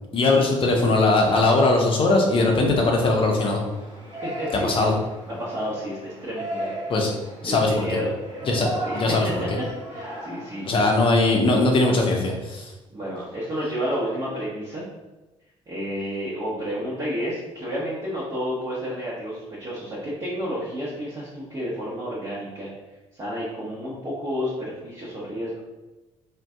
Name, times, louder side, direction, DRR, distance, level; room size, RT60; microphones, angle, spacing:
voice 1, 0.1-3.6 4.6-4.9 6.9-7.1 7.4-8.0 8.5-9.3 10.6-12.7, left 2 dB, 35° left, 0 dB, 0.6 m, -20 dB
Yell, 3.6-11.3, right 1 dB, 90° right, 0.8 m, -36 dB
voice 2, 4.2-4.9 5.3-6.7 7.4-8.1 8.8-9.2 9.9-10.7 12.9-14.8 15.7-22.7 23.1-25.6, equal, 25° right, -8 dB, 0.9 m, -30 dB
2.5 x 2.2 x 3.5 m, 1.1 s
figure-of-eight pair, 50°, 16 cm